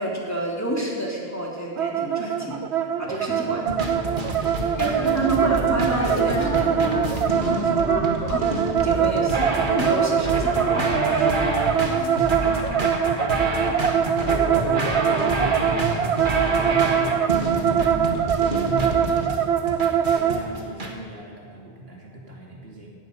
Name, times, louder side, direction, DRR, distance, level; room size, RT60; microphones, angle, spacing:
voice 1, 0.0-2.6 2.8-3.6 4.8-7.1 7.3-7.9 8.3-11.7 14.0-14.6, right 1 dB, 15° left, -3 dB, 3.0 m, -29 dB
sound 1, 1.8-20.4, right 9 dB, 85° right, 1.1 m, -23 dB
voice 2, 3.0-3.7 4.1-5.1 11.6-19.8 20.0-22.9, equal, 70° right, -2 dB, 3.0 m, -37 dB
sound 2, 3.7-20.9, right 2 dB, 50° right, 1.8 m, -28 dB
Wind instrument woodwind instrument, 5.4-12.9, left 2 dB, 70° left, 2.9 m, -34 dB
18.0 x 14.5 x 5.3 m, 2.2 s
omnidirectional pair, 1.1 m